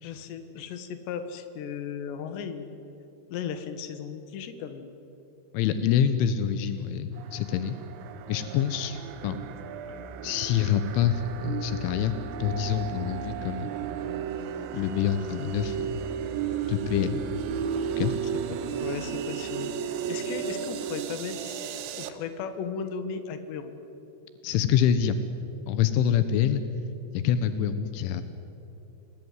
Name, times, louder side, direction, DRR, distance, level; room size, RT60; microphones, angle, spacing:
voice 1, 0.0-2.9 3.3-4.9 9.9-10.0 18.5-21.6 22.0-23.7, left 6 dB, 70° left, 9 dB, 3.7 m, -36 dB
voice 2, 5.5-7.8 8.3-9.4 10.2-13.9 14.7-16.0 16.7-17.2 18.0-18.1 24.4-25.2 25.7-26.6 27.1-28.2, left 9 dB, 85° left, 11 dB, 3.5 m, -26 dB
sound 1, 7.2-22.1, right 7 dB, 75° right, 3.4 m, -34 dB
29.5 x 19.0 x 9.6 m, 2.9 s
omnidirectional pair, 5.4 m